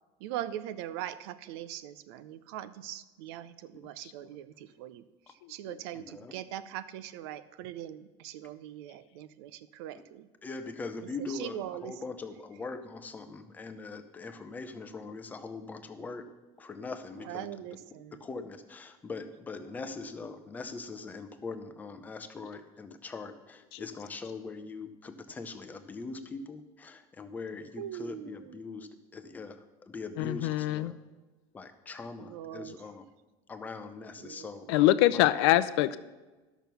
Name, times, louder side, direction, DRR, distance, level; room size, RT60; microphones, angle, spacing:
voice 1, 0.2-5.0 5.5-10.3 11.3-11.9 17.3-18.2 27.8-28.8 32.2-32.7 34.2-34.5, right 12 dB, 80° right, 14 dB, 0.6 m, -41 dB
voice 2, 5.9-6.4 9.9-10.0 10.4-16.2 16.6-17.5 18.1-30.9 31.5-33.1 33.5-34.7 35.1-35.3, left 3 dB, 10° left, 8 dB, 0.6 m, -41 dB
voice 3, 30.2-30.9 34.7-36.0, left 15 dB, 80° left, 15 dB, 0.5 m, -24 dB
12.5 x 6.1 x 6.9 m, 1.2 s
cardioid pair, 175°, 13 cm